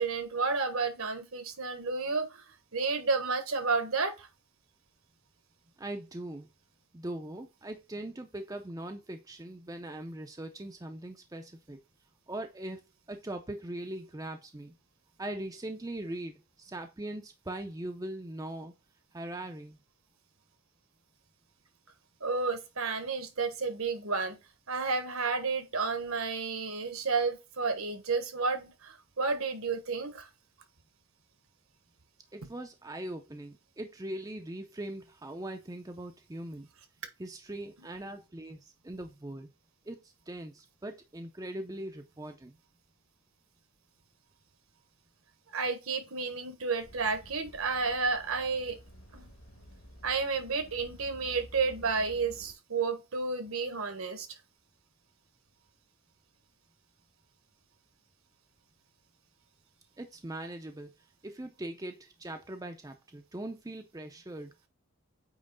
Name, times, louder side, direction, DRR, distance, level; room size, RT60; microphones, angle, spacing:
voice 1, 0.0-2.4 2.7-4.3 22.2-24.3 24.7-30.3 45.5-48.8 49.1-49.3 50.0-54.3, right 4 dB, 70° right, 1.4 m, -31 dB
voice 2, 5.8-6.5 6.9-11.8 12.3-12.8 13.1-14.7 15.2-18.7 19.1-19.8 32.3-36.7 37.2-39.5 39.9-42.6 60.0-60.9 61.2-64.5, right 1 dB, 15° right, 0.5 m, -41 dB
sound 1, 46.8-52.5, equal, 70° left, 2.0 m, -52 dB
8.8 x 3.1 x 3.9 m
head